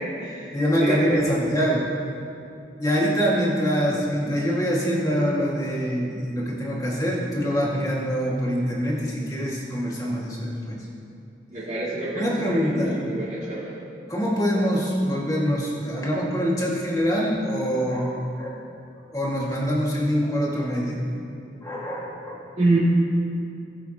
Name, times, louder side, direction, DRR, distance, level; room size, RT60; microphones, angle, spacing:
voice 1, 0.0-1.3 11.5-13.8 22.6-22.8, right 2 dB, 45° right, -13 dB, 2.5 m, -27 dB
voice 2, 0.5-1.9 2.8-10.8 12.2-12.9 14.1-18.6 19.1-21.0 21.6-22.5, equal, 20° left, -4 dB, 2.0 m, -24 dB
19.5 x 8.0 x 3.0 m, 2.6 s
head